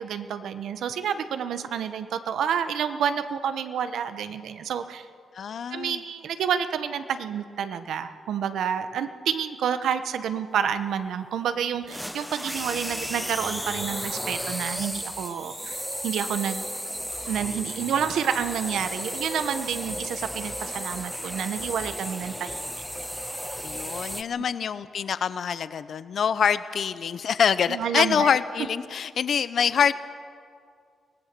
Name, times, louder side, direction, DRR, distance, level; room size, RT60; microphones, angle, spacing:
voice 1, 0.0-5.1 5.7-16.6 17.3-22.6 27.7-28.3, right 8 dB, 85° right, 10 dB, 1.0 m, -29 dB
voice 2, 5.3-6.0 23.6-29.9, left 7 dB, 55° left, 14 dB, 0.7 m, -25 dB
sound 1, 11.9-24.2, equal, ahead, 0.7 m, -34 dB
24.0 x 18.0 x 6.8 m, 2.3 s
wide cardioid pair, 155°, 0 cm